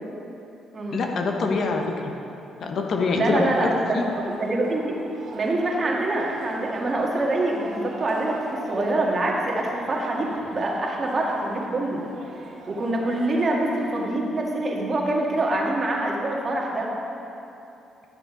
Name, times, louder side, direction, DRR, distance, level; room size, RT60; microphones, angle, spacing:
voice 1, 0.9-2.1 2.6-3.5 3.9-4.0, left 4 dB, 65° left, 2 dB, 1.0 m, -25 dB
voice 2, 3.1-4.9 5.3-12.0 12.7-16.9, right 2 dB, 40° right, -2 dB, 1.8 m, -25 dB
sound 1, 3.2-14.1, right 3 dB, 75° right, 1.5 m, -41 dB
11.5 x 6.6 x 5.1 m, 2.8 s
cardioid pair, 90°, 0 cm